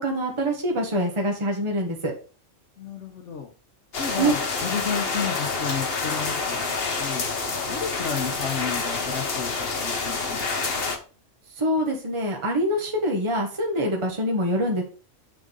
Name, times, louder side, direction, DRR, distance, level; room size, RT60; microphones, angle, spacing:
voice 1, 0.0-2.1 4.2-4.3 11.6-14.8, equal, 25° right, 0 dB, 1.4 m, -25 dB
voice 2, 2.8-3.5 4.0-6.6 7.0-7.3 7.7-10.6, left 6 dB, 70° left, 3 dB, 1.2 m, -32 dB
sound 1, 3.9-11.0, left 4 dB, 55° left, 1.3 m, -28 dB
7.2 x 3.8 x 5.3 m, 0.36 s
omnidirectional pair, 1.3 m